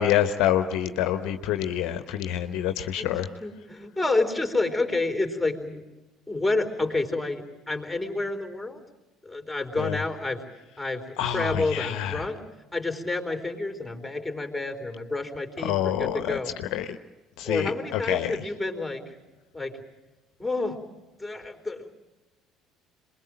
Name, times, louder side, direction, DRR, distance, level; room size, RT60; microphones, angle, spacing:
voice 1, 0.0-3.3 9.8-10.0 11.2-12.3 15.6-17.0 17.4-18.4, left 11 dB, 60° left, 9 dB, 1.0 m, -27 dB
voice 2, 3.4-5.8 6.3-8.8 9.2-10.4 10.8-12.4 12.7-16.5 17.4-19.1 19.5-19.8 20.4-20.8 21.2-21.9, left 2 dB, 5° left, 4 dB, 3.9 m, -29 dB
27.5 x 21.0 x 7.6 m, 1.1 s
figure-of-eight pair, 55°, 0 cm